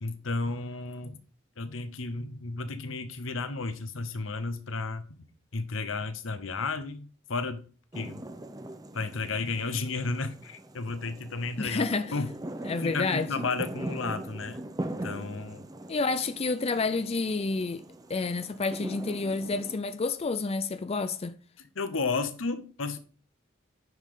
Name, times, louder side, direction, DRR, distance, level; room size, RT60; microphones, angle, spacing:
voice 1, 0.0-1.2 1.6-5.3 5.5-7.6 7.9-8.2 8.9-11.9 12.1-12.3 12.8-15.7 21.7-23.0, left 3 dB, 80° left, 0.9 m, -33 dB
sound 1, 7.9-19.8, right 1 dB, 20° right, 0.7 m, -41 dB
voice 2, 11.6-12.1 12.6-13.3 15.9-17.8 18.1-21.4, left 3 dB, 30° left, 0.4 m, -29 dB
9.4 x 5.2 x 3.7 m
head